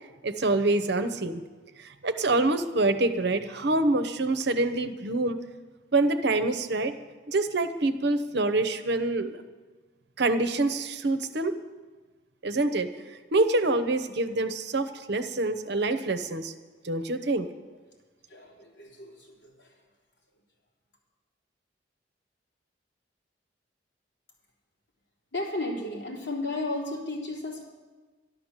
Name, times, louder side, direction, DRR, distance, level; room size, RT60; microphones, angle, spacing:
voice 1, 0.2-1.4 1.8-5.4 5.9-6.9 7.3-9.4 10.2-11.6 12.4-12.9 13.3-16.5 16.8-17.5, right 2 dB, 60° right, 9 dB, 0.9 m, -26 dB
voice 2, 18.3-19.7 25.3-27.6, left 2 dB, 65° left, -3 dB, 3.9 m, -34 dB
12.5 x 12.0 x 7.4 m, 1.3 s
head